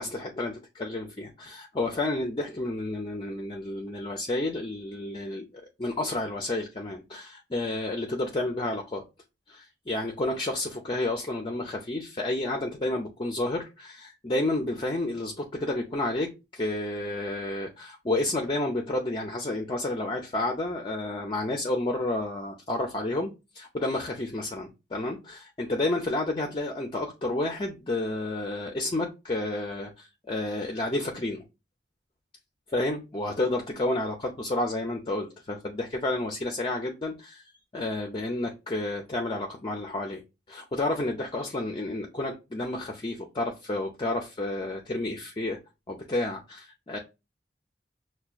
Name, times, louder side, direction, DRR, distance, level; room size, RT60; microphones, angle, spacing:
voice 1, 0.0-5.5 5.8-9.0 9.5-31.4 32.7-37.4 37.7-40.2 40.5-45.6 45.9-47.0, left 2 dB, 30° left, 0.5 m, -30 dB
5.6 x 2.2 x 2.4 m
head